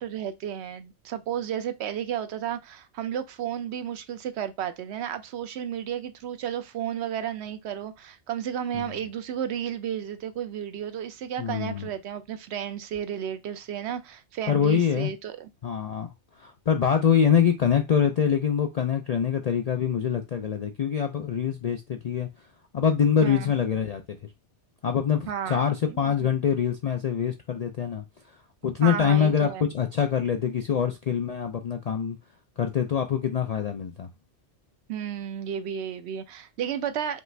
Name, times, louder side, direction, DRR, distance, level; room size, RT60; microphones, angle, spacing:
voice 1, 0.0-15.5 23.2-23.5 25.3-26.3 28.8-29.7 34.9-37.2, right 9 dB, 70° right, 0.8 m, -33 dB
voice 2, 11.4-11.9 14.5-15.1 15.6-16.1 16.4-22.3 22.7-24.2 24.8-28.0 28.6-32.2 32.6-34.1, left 7 dB, 60° left, 0.4 m, -24 dB
5.2 x 2.4 x 3.2 m
omnidirectional pair, 1.2 m